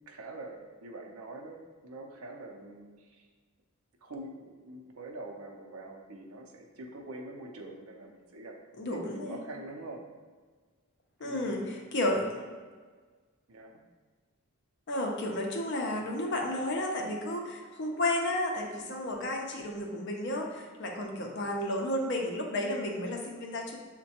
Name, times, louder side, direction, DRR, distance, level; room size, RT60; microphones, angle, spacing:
voice 1, 0.1-3.3 4.0-8.6 8.9-10.0 11.2-11.8 13.5-13.8 21.2-21.6, right 2 dB, 75° right, 1 dB, 0.6 m, -45 dB
voice 2, 8.8-9.4 11.2-12.4 14.9-23.8, left 1 dB, 55° left, 1 dB, 0.6 m, -32 dB
6.1 x 2.2 x 2.8 m, 1.5 s
head